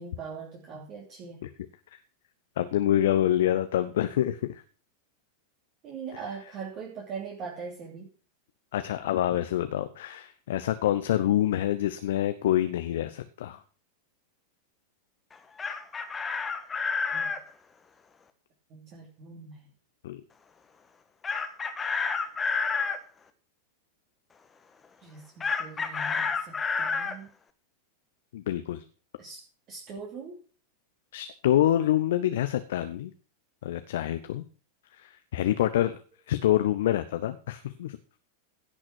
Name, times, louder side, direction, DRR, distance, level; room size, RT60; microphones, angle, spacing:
voice 1, 0.0-1.4 5.8-8.1 17.1-17.4 18.7-19.7 25.0-27.3 29.2-30.4 32.1-32.3, right 5 dB, 35° right, -1 dB, 2.9 m, -41 dB
voice 2, 2.6-4.6 8.7-13.6 20.0-20.2 28.3-28.8 31.1-33.1 33.6-34.4 34.9-36.0 36.3-38.0, left 12 dB, 55° left, 10 dB, 0.8 m, -26 dB
Chicken rooster, 15.3-17.4 21.2-23.0 25.4-27.2, left 5 dB, 15° left, 1.5 m, -29 dB
16.5 x 6.3 x 6.2 m, 0.38 s
figure-of-eight pair, 90°, 0 cm